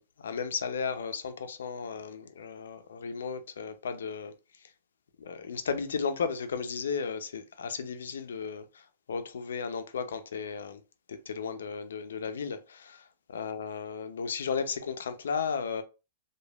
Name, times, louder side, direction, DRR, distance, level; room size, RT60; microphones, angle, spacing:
voice 1, 0.0-4.7 5.2-10.8 11.1-15.8, left 6 dB, 80° left, 0.4 m, -35 dB
3.1 x 2.2 x 2.3 m
hypercardioid pair, 115°, 0 cm